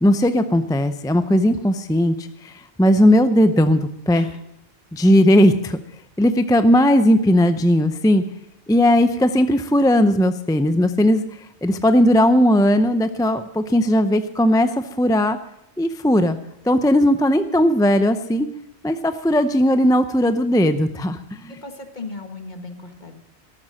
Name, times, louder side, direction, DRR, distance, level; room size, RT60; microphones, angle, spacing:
voice 1, 0.0-4.3 4.9-5.8 6.2-8.2 8.7-11.2 11.6-15.4 15.8-16.4 16.7-18.5 18.8-21.6, equal, 5° left, 10 dB, 0.3 m, -17 dB
voice 2, 21.5-23.1, left 3 dB, 40° left, 6 dB, 1.6 m, -36 dB
13.5 x 12.0 x 6.3 m, 0.79 s
omnidirectional pair, 1.1 m